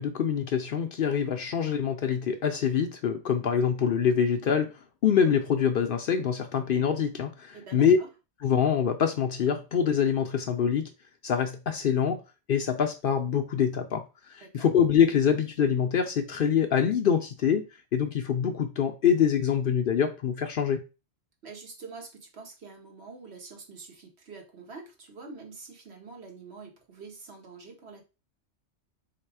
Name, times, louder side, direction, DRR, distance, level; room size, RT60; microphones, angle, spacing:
voice 1, 0.0-4.7 5.0-8.0 8.4-10.9 11.2-12.2 12.5-14.0 14.3-17.7 17.9-20.8, left 7 dB, 60° left, 0.6 m, -25 dB
voice 2, 7.5-8.1 14.4-14.7 21.4-28.0, right 4 dB, 65° right, 1.3 m, -45 dB
3.6 x 2.9 x 4.7 m
omnidirectional pair, 1.2 m